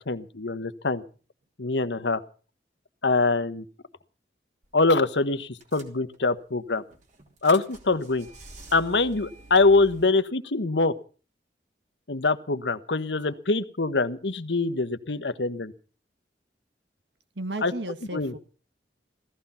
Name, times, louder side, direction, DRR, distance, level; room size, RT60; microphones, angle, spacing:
voice 1, 0.1-1.0 1.6-2.2 3.0-3.6 4.7-6.8 7.4-8.3 8.7-10.9 12.1-15.7 17.6-17.7 18.1-18.3, left 3 dB, 85° left, 12 dB, 1.2 m, -24 dB
sound 1, 4.6-4.9 5.1-5.2 5.6-6.4 6.9-10.1, right 2 dB, 45° right, 3.1 m, -47 dB
voice 2, 17.4-18.4, right 1 dB, 85° right, 10 dB, 1.8 m, -35 dB
17.0 x 14.5 x 5.7 m, 0.38 s
head